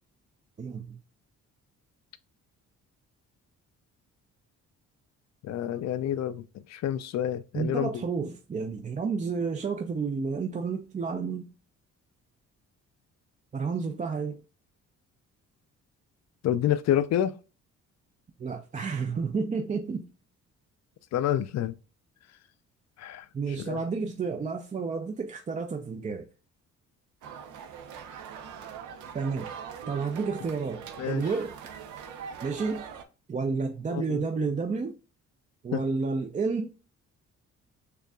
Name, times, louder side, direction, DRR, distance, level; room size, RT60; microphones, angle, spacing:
voice 1, 0.6-1.0 7.5-11.5 13.5-14.4 18.4-20.1 23.3-26.3 29.1-29.5 29.9-31.6 32.4-32.8 33.3-35.0 35.6-36.7, right 4 dB, 25° right, 0.4 m, -30 dB
voice 2, 5.4-7.9 16.4-17.3 21.1-21.7 23.0-23.3 23.6-23.8 31.0-31.2 33.9-34.2 35.7-35.8, left 11 dB, 60° left, 0.5 m, -28 dB
sound 1, 27.2-33.0, right 7 dB, 80° right, 0.7 m, -42 dB
6.7 x 2.5 x 2.3 m
cardioid pair, 90°, 30 cm